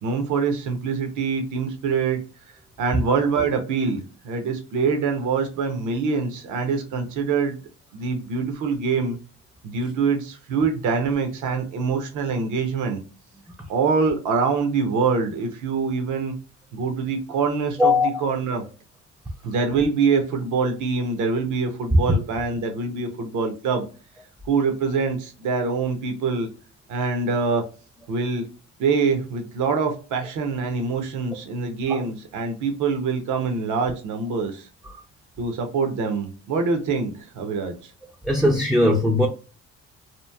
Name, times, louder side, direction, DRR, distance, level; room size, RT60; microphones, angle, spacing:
voice 1, 0.0-2.2 2.8-7.6 7.9-9.2 9.6-13.0 13.7-16.3 16.7-18.6 19.4-23.9 24.5-26.5 26.9-27.6 28.1-28.5 28.8-34.7 35.4-37.7, right 5 dB, 80° right, 0.7 m, -24 dB
voice 2, 17.8-18.2 31.9-32.0 38.2-39.3, left 2 dB, ahead, 0.4 m, -19 dB
2.9 x 2.5 x 2.3 m
cardioid pair, 90°, 30 cm